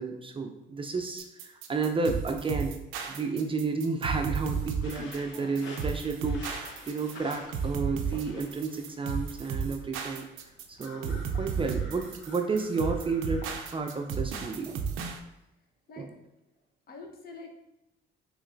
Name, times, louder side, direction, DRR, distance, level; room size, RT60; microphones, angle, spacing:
voice 1, 0.0-2.8 3.1-13.4 13.7-14.8 16.0-16.1, right 4 dB, 25° right, 4 dB, 0.4 m, -32 dB
sound 1, 1.2-15.2, right 6 dB, 90° right, 0.5 m, -34 dB
sound 2, 4.8-14.1, left 2 dB, 85° left, 0.8 m, -50 dB
voice 2, 5.3-5.6 11.6-11.7 15.9-16.1 16.9-17.5, left 3 dB, 50° left, 3 dB, 0.7 m, -46 dB
4.2 x 3.1 x 2.5 m, 0.91 s
cardioid pair, 90°, 20 cm